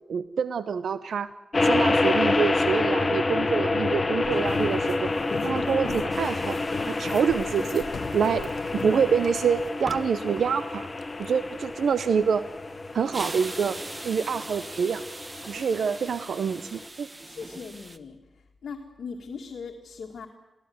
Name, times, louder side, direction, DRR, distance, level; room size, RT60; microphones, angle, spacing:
voice 1, 0.1-1.3 1.6-5.1 5.4-6.6 6.9-7.9 8.1-8.5 8.8-10.9 11.2-12.4 12.9-13.8 14.0-15.0 15.5-17.1, right 6 dB, 85° right, 13 dB, 0.7 m, -26 dB
sound 1, 1.5-16.8, left 2 dB, 30° left, 1.3 m, -28 dB
sound 2, 4.2-9.7, left 5 dB, 65° left, 1.2 m, -39 dB
sound 3, 6.1-18.0, right 2 dB, 20° right, 1.2 m, -43 dB
voice 2, 17.2-20.3, left 5 dB, 80° left, 0 dB, 2.0 m, -40 dB
24.0 x 16.5 x 9.4 m, 1.0 s
wide cardioid pair, 140°, 0 cm